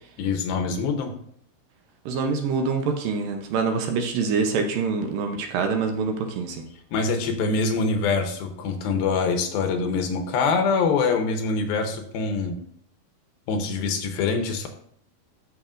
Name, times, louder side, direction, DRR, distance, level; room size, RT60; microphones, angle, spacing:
voice 1, 0.2-1.1 6.9-12.6 13.5-14.7, left 4 dB, 80° left, 4 dB, 2.7 m, -24 dB
voice 2, 2.1-6.6, right 5 dB, 75° right, 4 dB, 2.3 m, -25 dB
13.0 x 5.8 x 2.5 m, 0.64 s
omnidirectional pair, 4.4 m